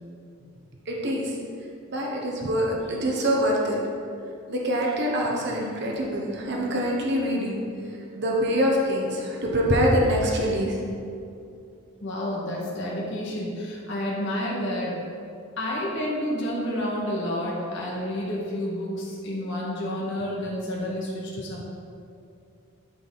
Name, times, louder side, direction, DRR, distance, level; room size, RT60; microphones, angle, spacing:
voice 1, 0.9-1.3 1.9-3.8 4.5-7.6 8.1-10.8, equal, 50° right, -2 dB, 1.2 m, -24 dB
voice 2, 12.0-15.0 15.6-21.6, left 1 dB, 55° left, -5 dB, 2.0 m, -30 dB
12.5 x 5.0 x 4.1 m, 2.5 s
head